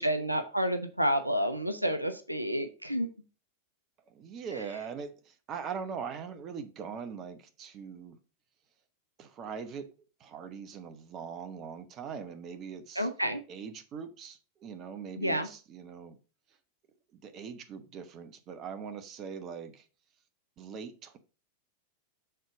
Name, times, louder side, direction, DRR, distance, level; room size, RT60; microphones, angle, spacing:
voice 1, 0.0-3.1 4.5-4.6 13.0-13.4 15.2-15.5, equal, 85° right, 0.6 m, -29 dB
voice 2, 4.1-8.2 9.2-9.9 10.2-13.1 13.5-16.2 17.1-19.9 20.6-21.2, right 6 dB, 35° right, 0.9 m, -41 dB
6.7 x 4.0 x 4.9 m
figure-of-eight pair, 90°, 0 cm